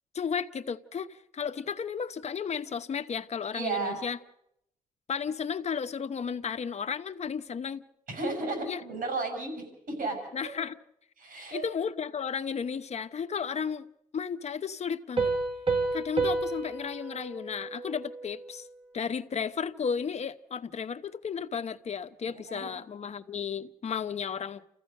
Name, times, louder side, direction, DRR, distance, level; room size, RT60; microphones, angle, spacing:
voice 1, 0.1-4.2 5.1-7.8 8.7-8.8 10.3-10.7 11.5-13.9 14.1-15.3 15.9-18.7 18.9-24.6, left 6 dB, 50° left, 0.9 m, -33 dB
voice 2, 3.5-4.0 8.1-10.2 11.2-11.6 22.5-22.7, right 3 dB, 90° right, 6.6 m, -33 dB
Piano, 15.2-18.6, right 3 dB, 40° right, 2.6 m, -31 dB
29.0 x 15.0 x 6.5 m
wide cardioid pair, 110°, 14 cm